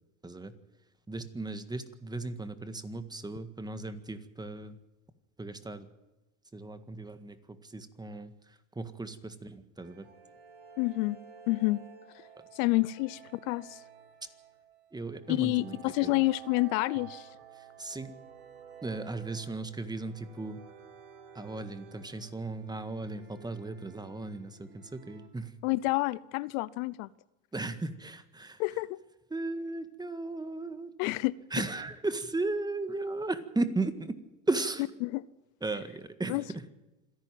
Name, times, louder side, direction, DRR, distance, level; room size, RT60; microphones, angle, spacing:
voice 1, 0.2-0.6 1.1-4.8 5.4-5.9 6.5-8.3 8.8-10.1 14.9-16.2 17.8-18.2 18.8-20.6 21.4-25.5 27.5-28.6 29.3-30.9 31.5-34.2 34.5-34.8 35.6-36.7, right 2 dB, 10° right, 11 dB, 1.7 m, -36 dB
sound 1, 9.8-25.3, right 8 dB, 55° right, 4.9 m, -52 dB
voice 2, 10.8-11.2 11.5-11.8 12.5-13.8 15.3-17.3 25.6-27.1 28.6-29.0 31.0-31.3 35.0-35.2 36.3-36.4, left 21 dB, 70° left, 19 dB, 0.7 m, -28 dB
26.5 x 11.0 x 9.2 m, 1.0 s
supercardioid pair, 110°, 41 cm